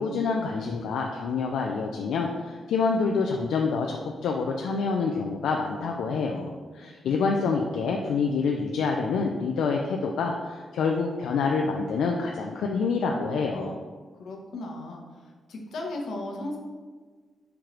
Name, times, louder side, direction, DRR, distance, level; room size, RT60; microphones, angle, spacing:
voice 1, 0.0-13.8, left 4 dB, 90° left, 1 dB, 0.3 m, -27 dB
voice 2, 7.0-7.4 14.2-15.0 15.5-16.6, left 2 dB, 70° left, 1 dB, 0.8 m, -36 dB
4.5 x 3.1 x 3.7 m, 1.5 s
cardioid pair, 130°, 0 cm